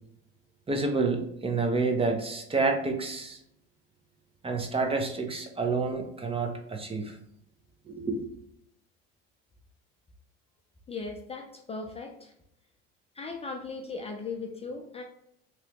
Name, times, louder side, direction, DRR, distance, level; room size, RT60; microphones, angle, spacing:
voice 1, 0.7-3.4 4.4-7.1 7.9-8.2, right 3 dB, 20° right, 3 dB, 0.6 m, -29 dB
voice 2, 10.9-12.3 13.2-15.0, left 4 dB, 20° left, 2 dB, 0.4 m, -38 dB
3.0 x 2.9 x 2.9 m, 0.75 s
hypercardioid pair, 80°, 30 cm